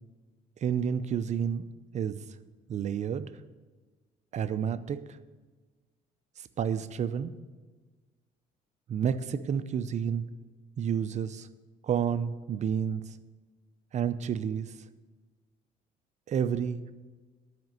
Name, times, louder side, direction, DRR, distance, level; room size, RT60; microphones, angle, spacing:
voice 1, 0.6-1.6 1.9-2.2 2.7-3.3 4.3-5.2 6.6-7.3 8.9-10.3 10.8-11.5 11.8-13.2 13.9-14.8 16.3-17.0, right 8 dB, 45° right, 13 dB, 0.5 m, -30 dB
12.0 x 5.2 x 7.6 m, 1.3 s
cardioid pair, 110°, 17 cm